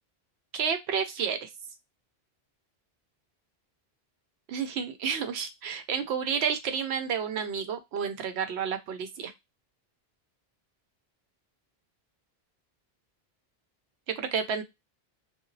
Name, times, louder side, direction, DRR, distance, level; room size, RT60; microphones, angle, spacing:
voice 1, 0.5-1.5 4.5-9.3 14.1-14.6, right 7 dB, 90° right, 8 dB, 0.9 m, -30 dB
2.8 x 2.3 x 2.6 m, 0.21 s
omnidirectional pair, 1.1 m